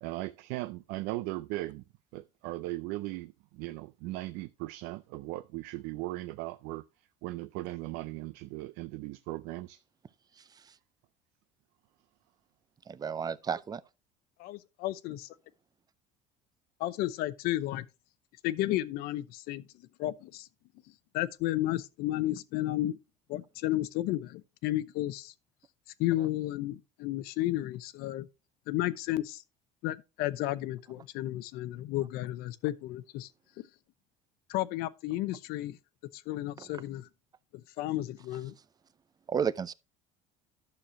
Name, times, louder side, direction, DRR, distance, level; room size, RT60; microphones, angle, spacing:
voice 1, 0.0-1.8 2.1-6.8 7.2-9.8, right 18 dB, 80° right, 0.5 m, -38 dB
voice 2, 12.9-13.8 36.6-36.7 39.3-39.7, right 7 dB, 25° right, 0.5 m, -32 dB
voice 3, 14.4-15.3 16.8-17.9 18.4-19.7 20.0-20.5 21.1-23.0 23.3-25.3 26.0-28.3 28.7-29.4 29.8-33.3 34.5-35.8 36.1-37.1 37.5-38.5, left 15 dB, 70° left, 0.7 m, -32 dB
11.5 x 6.6 x 2.9 m
supercardioid pair, 110°, 17 cm